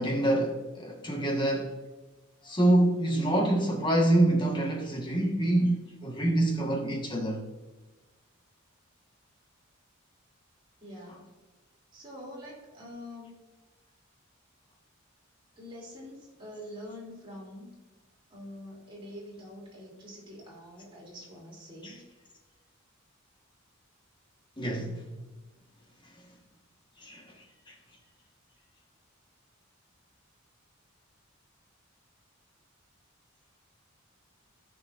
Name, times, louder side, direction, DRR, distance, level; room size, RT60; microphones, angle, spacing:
voice 1, 0.0-1.7 2.4-7.4 21.8-21.9 24.6-25.1 27.0-27.3 27.7-27.8, right 1 dB, 25° left, 0 dB, 1.5 m, -26 dB
voice 2, 10.8-11.3 11.9-13.4 15.6-17.7 18.3-22.0, left 1 dB, 25° right, -5 dB, 3.0 m, -45 dB
14.0 x 6.1 x 2.6 m, 1.2 s
head